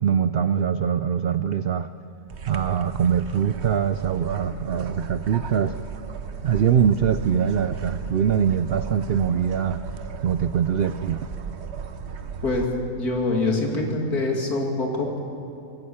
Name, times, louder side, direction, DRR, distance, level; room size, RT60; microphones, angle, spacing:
voice 1, 0.0-1.9 2.5-5.7 6.4-9.8 10.2-11.3, right 8 dB, 85° right, 12 dB, 0.5 m, -23 dB
sound 1, 2.3-12.7, right 5 dB, 50° right, 1.1 m, -35 dB
voice 2, 13.0-15.2, left 2 dB, 70° left, 1 dB, 3.2 m, -24 dB
24.0 x 14.0 x 8.7 m, 2.8 s
omnidirectional pair, 1.7 m